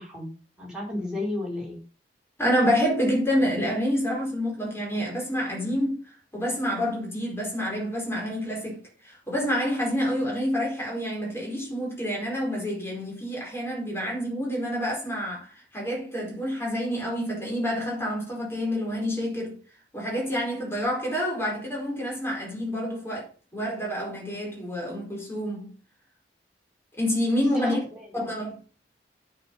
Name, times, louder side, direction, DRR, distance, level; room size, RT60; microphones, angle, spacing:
voice 1, 0.0-1.8 27.5-28.2, left 1 dB, 5° right, 4.4 m, -33 dB
voice 2, 2.4-19.6 19.9-23.3 23.5-25.7 27.0-27.8 28.1-28.6, equal, 15° left, 4.7 m, -28 dB
9.0 x 7.5 x 5.7 m
head